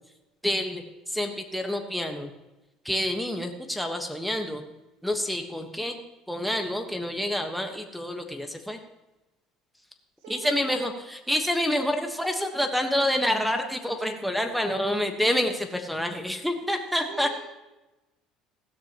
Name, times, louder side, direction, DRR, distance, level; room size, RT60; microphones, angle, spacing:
voice 1, 0.4-2.3 2.8-4.6 5.0-6.0 6.3-8.8 10.3-17.3, left 1 dB, ahead, 5 dB, 1.3 m, -28 dB
voice 2, 10.2-10.8 12.7-12.8 17.1-17.4, right 5 dB, 90° right, -1 dB, 2.2 m, -42 dB
15.5 x 13.0 x 3.0 m, 1.0 s
cardioid pair, 120°, 0 cm